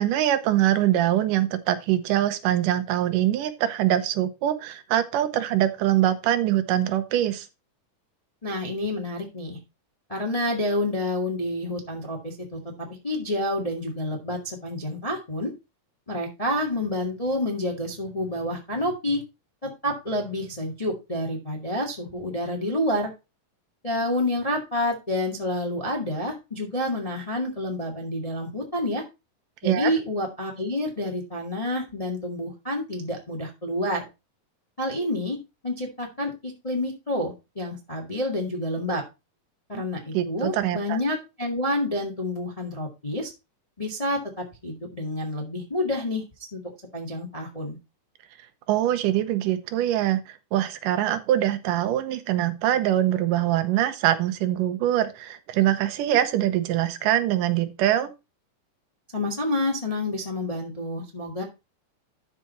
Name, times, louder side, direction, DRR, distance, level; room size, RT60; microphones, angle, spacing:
voice 1, 0.0-7.5 29.6-29.9 40.1-41.0 48.7-50.2 50.5-58.1, right 12 dB, 80° right, 9 dB, 2.5 m, -23 dB
voice 2, 8.4-9.6 10.1-12.6 13.0-15.5 16.1-19.2 19.6-23.1 23.8-29.0 29.6-34.0 34.8-35.4 35.6-39.0 39.7-43.3 43.8-46.2 46.5-46.6 46.9-47.8 59.1-61.4, left 1 dB, 15° left, 1 dB, 1.3 m, -28 dB
12.5 x 4.8 x 4.2 m, 0.26 s
omnidirectional pair, 3.8 m